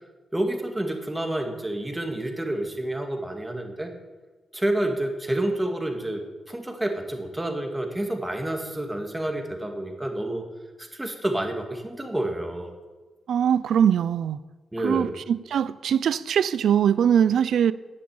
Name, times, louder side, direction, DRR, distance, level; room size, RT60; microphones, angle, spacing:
voice 1, 0.3-3.9 4.5-6.2 6.5-10.5 10.8-12.7 14.7-15.1, right 1 dB, 10° right, 2.0 m, -29 dB
voice 2, 13.3-14.4 14.8-17.7, right 8 dB, 80° right, 0.5 m, -22 dB
11.0 x 10.0 x 8.8 m
wide cardioid pair, 125°, 0 cm